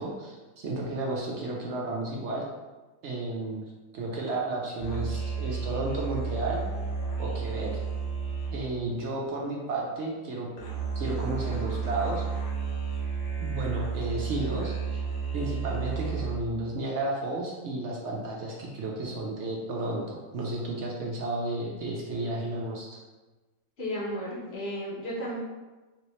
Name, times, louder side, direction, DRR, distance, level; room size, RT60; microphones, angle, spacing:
voice 1, 0.0-2.4 3.0-3.6 3.9-6.6 7.2-7.8 8.5-10.5 10.9-12.2 13.4-15.0 15.3-23.0, right 2 dB, 65° right, -3 dB, 0.8 m, -32 dB
sound 1, 4.8-9.7 10.6-16.6, right 5 dB, 75° left, 1.2 m, -32 dB
voice 2, 23.8-25.4, equal, 55° left, -5 dB, 1.0 m, -33 dB
3.4 x 2.8 x 3.0 m, 1.2 s
omnidirectional pair, 1.4 m